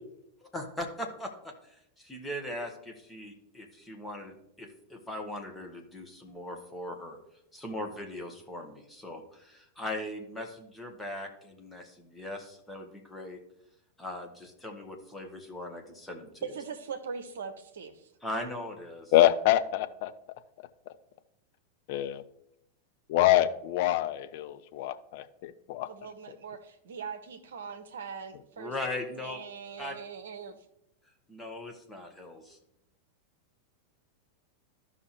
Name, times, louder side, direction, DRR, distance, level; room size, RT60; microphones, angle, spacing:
voice 1, 0.4-7.2 7.5-13.4 14.0-16.5 18.2-19.1 28.6-29.4 29.8-30.0 31.3-32.6, left 1 dB, 5° left, 1 dB, 1.5 m, -39 dB
voice 2, 16.4-18.1 25.8-28.7 29.2-30.6, right 6 dB, 65° right, 9 dB, 0.9 m, -41 dB
voice 3, 19.1-20.1 21.9-22.2 23.1-25.9, left 13 dB, 50° left, 10 dB, 0.5 m, -25 dB
13.5 x 5.6 x 3.1 m, 0.81 s
figure-of-eight pair, 90°, 0 cm